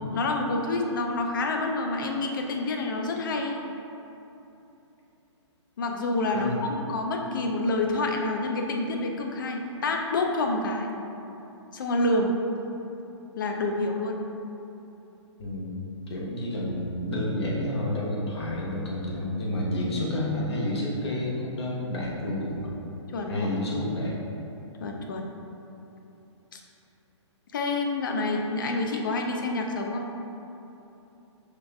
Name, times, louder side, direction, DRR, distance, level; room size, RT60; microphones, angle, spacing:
voice 1, 0.1-3.6 5.8-10.9 11.7-12.4 13.4-14.3 23.1-23.5 24.8-25.3 26.5-26.6 27.5-30.1, left 2 dB, 45° left, 2 dB, 0.4 m, -28 dB
voice 2, 15.4-22.7 23.3-24.2, left 1 dB, 60° left, -4 dB, 0.9 m, -30 dB
5.6 x 3.3 x 2.2 m, 3.0 s
hypercardioid pair, 170°, 16 cm